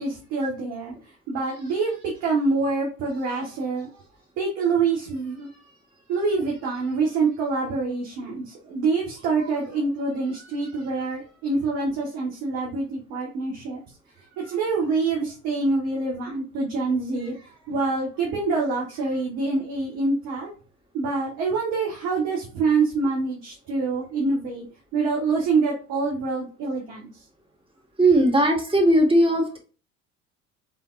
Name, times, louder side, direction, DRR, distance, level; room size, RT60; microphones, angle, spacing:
voice 1, 0.0-4.0 4.4-5.7 6.1-13.8 14.2-20.5 20.9-24.6 24.9-27.2, right 4 dB, 65° right, -2 dB, 1.7 m, -26 dB
voice 2, 28.0-29.6, right 1 dB, 15° right, 1 dB, 1.9 m, -18 dB
5.7 x 3.6 x 2.6 m, 0.36 s
hypercardioid pair, 70°, 39 cm